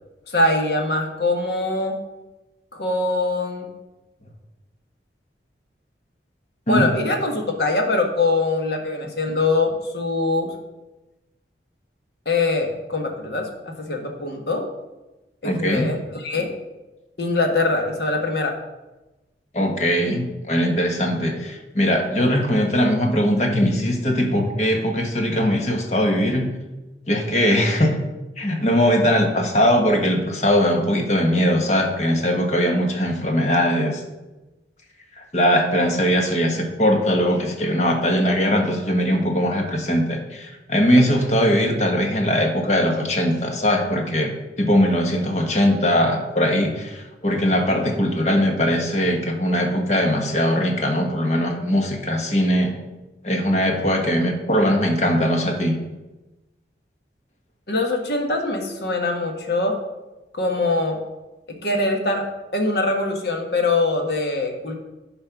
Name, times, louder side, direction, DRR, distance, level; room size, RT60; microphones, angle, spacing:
voice 1, 0.3-2.0 2.7-3.7 6.7-10.5 12.2-13.5 13.8-14.6 15.4-16.5 17.2-18.6 57.7-59.8 60.3-61.0 61.5-62.3 62.5-64.7, left 2 dB, 65° left, 3 dB, 1.4 m, -23 dB
voice 2, 15.4-15.9 19.5-26.5 27.1-28.0 28.4-34.0 35.3-52.7 53.2-55.7, equal, 40° left, 3 dB, 1.3 m, -20 dB
10.5 x 4.4 x 5.9 m, 1.1 s
head